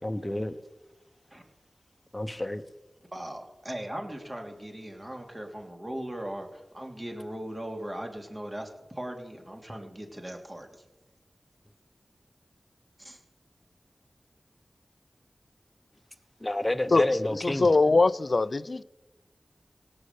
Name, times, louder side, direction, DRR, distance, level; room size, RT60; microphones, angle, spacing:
voice 1, 0.0-0.5 2.1-2.6 16.4-17.8, left 1 dB, 25° left, 1.0 m, -29 dB
voice 2, 3.1-10.7 13.0-13.2, right 1 dB, 30° right, 2.9 m, -39 dB
voice 3, 17.4-18.8, left 3 dB, 65° left, 0.5 m, -22 dB
17.5 x 6.4 x 8.4 m
cardioid pair, 45°, 0 cm